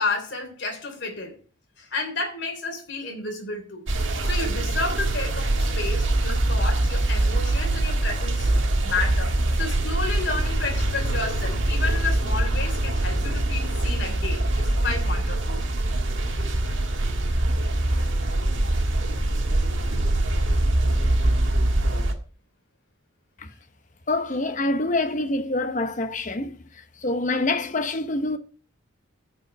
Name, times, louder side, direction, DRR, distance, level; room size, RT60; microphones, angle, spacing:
voice 1, 0.0-1.4 1.8-3.9 4.2-8.5 8.8-15.6, left 3 dB, 55° left, 3.2 m, -31 dB
sound 1, 3.9-22.1, right 1 dB, 65° right, 1.6 m, -23 dB
voice 2, 24.1-28.4, left 2 dB, 40° left, 0.9 m, -26 dB
12.0 x 5.4 x 5.2 m
head